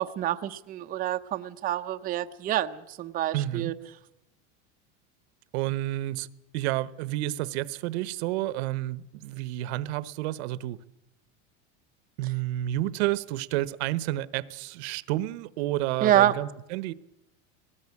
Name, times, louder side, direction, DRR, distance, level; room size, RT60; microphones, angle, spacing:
voice 1, 0.0-3.7 16.0-16.3, right 12 dB, 25° right, 0.7 m, -27 dB
voice 2, 3.3-3.7 5.5-6.3 6.5-10.8 12.2-16.9, right 15 dB, 65° right, 1.0 m, -30 dB
20.0 x 18.0 x 8.4 m
supercardioid pair, 150°, 35 cm